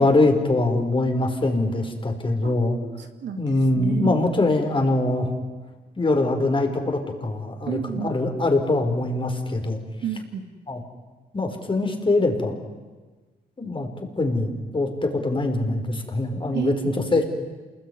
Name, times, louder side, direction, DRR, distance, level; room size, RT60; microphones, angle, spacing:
voice 1, 0.0-2.8 3.4-5.3 6.0-9.8 10.7-10.8 11.3-12.6 13.6-13.9 14.2-17.2, left 2 dB, 30° left, 4 dB, 4.9 m, -23 dB
voice 2, 2.4-4.3 7.7-8.2 10.0-10.5 16.5-17.2, right 8 dB, 80° right, 7 dB, 2.4 m, -31 dB
28.0 x 21.0 x 9.6 m, 1.3 s
cardioid pair, 80°, 18 cm